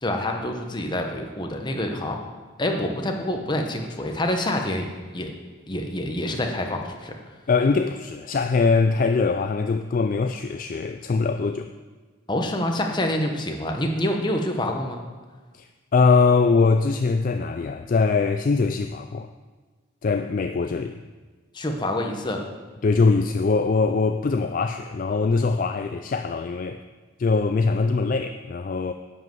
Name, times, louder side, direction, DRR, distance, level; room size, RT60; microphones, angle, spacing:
voice 1, 0.0-2.2 2.6-5.3 5.7-7.1 12.3-15.0 21.5-22.4, left 1 dB, 20° left, 3 dB, 1.0 m, -27 dB
voice 2, 7.5-11.7 15.5-19.3 20.0-21.0 22.8-26.8 27.2-28.9, left 4 dB, 40° left, 8 dB, 0.3 m, -22 dB
11.0 x 5.3 x 7.7 m, 1.4 s
head